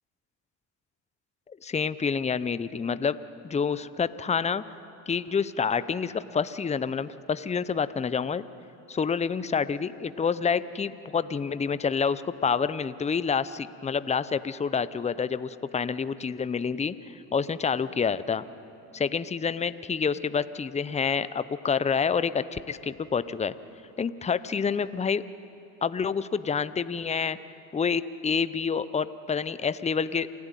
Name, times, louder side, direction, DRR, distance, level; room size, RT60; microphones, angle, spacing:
voice 1, 1.6-3.2 3.4-4.6 5.1-8.4 8.9-18.4 18.9-23.5 24.0-25.2 25.8-27.4 27.7-30.3, left 6 dB, 15° left, 15 dB, 0.6 m, -28 dB
28.0 x 13.0 x 9.1 m, 2.9 s
supercardioid pair, 80°, 42 cm